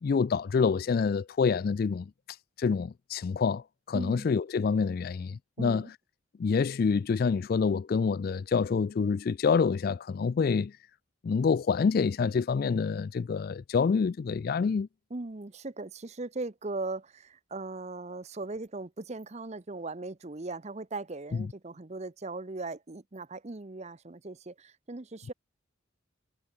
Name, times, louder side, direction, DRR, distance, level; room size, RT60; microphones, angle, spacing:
voice 1, 0.0-2.1 2.6-5.8 6.4-10.7 11.2-14.9, left 5 dB, 45° left, 0.3 m, -27 dB
voice 2, 3.9-4.3 5.6-5.9 15.1-25.3, right 2 dB, 35° right, 0.7 m, -39 dB
head